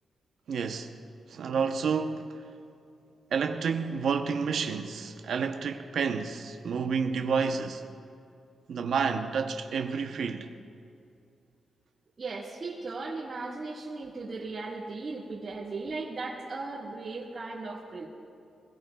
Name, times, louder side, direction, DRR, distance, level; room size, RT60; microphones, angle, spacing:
voice 1, 0.5-0.9 1.3-2.4 3.3-7.8 8.7-10.5, right 5 dB, 65° right, 0.7 m, -30 dB
voice 2, 12.2-18.0, right 3 dB, 35° right, 1.7 m, -37 dB
23.0 x 17.0 x 2.3 m
wide cardioid pair, 150°, 0 cm